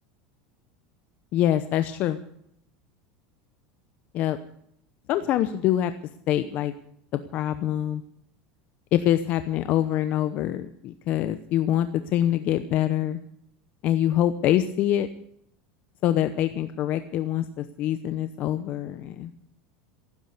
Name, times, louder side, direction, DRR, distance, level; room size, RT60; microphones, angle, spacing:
voice 1, 1.3-2.2 4.1-4.4 5.1-5.9 6.3-6.7 7.1-8.0 8.9-13.2 13.8-15.1 16.0-19.3, left 12 dB, 45° left, 10 dB, 0.8 m, -25 dB
16.5 x 10.0 x 8.2 m, 0.71 s
supercardioid pair, 150°, 4 cm